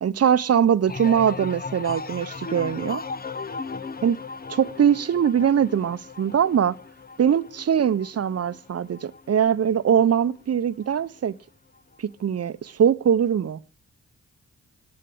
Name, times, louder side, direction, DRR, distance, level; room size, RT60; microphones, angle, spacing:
voice 1, 0.0-3.0 4.0-4.2 4.5-6.7 7.2-11.3 12.0-13.6, right 8 dB, 50° right, 0.8 m, -22 dB
sound 1, 0.9-10.4 10.8-11.3, left 4 dB, 30° left, 0.8 m, -37 dB
11.5 x 7.6 x 8.5 m
supercardioid pair, 55°, 31 cm